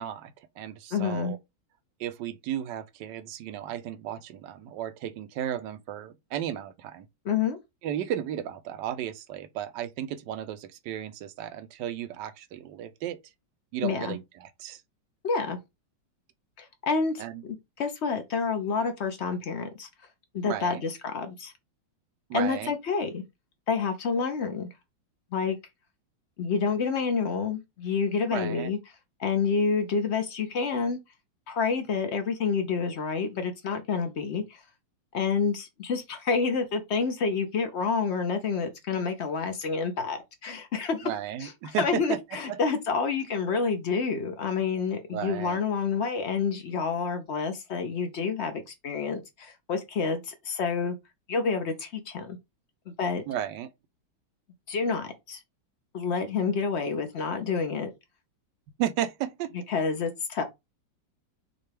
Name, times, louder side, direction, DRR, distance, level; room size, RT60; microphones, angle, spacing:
voice 1, 0.0-1.4 2.0-7.1 7.8-13.2 13.7-14.8 17.2-17.4 20.4-20.8 22.3-22.7 28.3-28.7 41.0-42.2 42.5-42.6 45.1-45.6 53.3-53.7 58.8-59.5, right 11 dB, 75° right, 1.1 m, -34 dB
voice 2, 0.9-1.3 7.2-7.6 13.8-14.2 15.2-15.6 16.6-17.2 17.8-19.9 20.3-21.5 22.3-23.2 23.7-24.7 25.3-25.6 26.4-28.8 29.2-31.0 31.5-34.6 35.1-41.1 41.4-51.0 51.3-52.4 52.9-53.2 54.7-55.4 55.9-57.9 59.7-60.4, left 5 dB, 65° left, 0.7 m, -28 dB
6.4 x 2.3 x 3.3 m
omnidirectional pair, 2.1 m